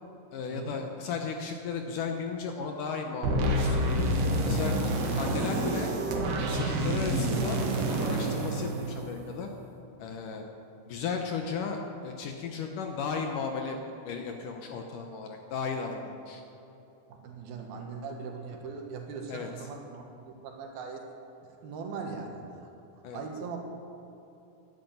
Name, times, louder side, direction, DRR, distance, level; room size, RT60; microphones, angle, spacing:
voice 1, 0.3-4.1 4.4-5.9 6.4-7.6 7.9-9.5 10.0-10.4 10.9-13.8 14.0-16.4 19.3-19.5 23.0-23.2, left 5 dB, 70° left, 3 dB, 2.1 m, -35 dB
sound 1, 3.2-9.4, right 1 dB, 85° right, 3.7 m, -28 dB
voice 2, 17.2-21.1 21.6-22.7 23.1-23.6, right 5 dB, 70° right, 2 dB, 3.2 m, -40 dB
11.5 x 11.0 x 9.1 m, 3.0 s
omnidirectional pair, 4.6 m